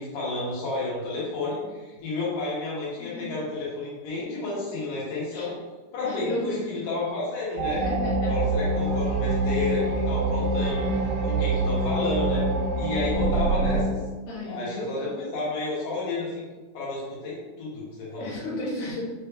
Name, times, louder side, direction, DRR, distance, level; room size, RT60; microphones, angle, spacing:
voice 1, 0.0-5.6 5.9-7.8 8.3-10.8 11.2-12.4 12.8-14.0 14.5-16.4 16.7-18.3, left 3 dB, 90° left, -7 dB, 2.9 m, -31 dB
voice 2, 6.0-6.6 7.7-8.5 10.4-10.5 14.3-15.3 18.2-19.0, left 1 dB, 70° left, -6 dB, 2.3 m, -33 dB
sound 1, 7.6-13.8, right 2 dB, 85° right, 2.1 m, -25 dB
5.9 x 2.4 x 3.1 m, 1.3 s
omnidirectional pair, 3.6 m